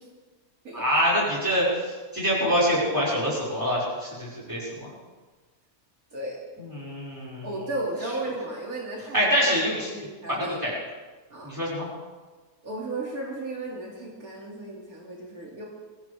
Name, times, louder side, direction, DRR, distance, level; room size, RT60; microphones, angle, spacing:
voice 1, 0.7-4.9 6.6-7.5 9.1-10.7 11.4-11.9, equal, 15° right, -7 dB, 5.7 m, -25 dB
voice 2, 7.4-9.3 9.9-10.6 11.3-11.5 12.6-15.7, right 2 dB, 75° right, -3 dB, 3.0 m, -34 dB
22.5 x 14.5 x 3.5 m, 1.4 s
omnidirectional pair, 1.5 m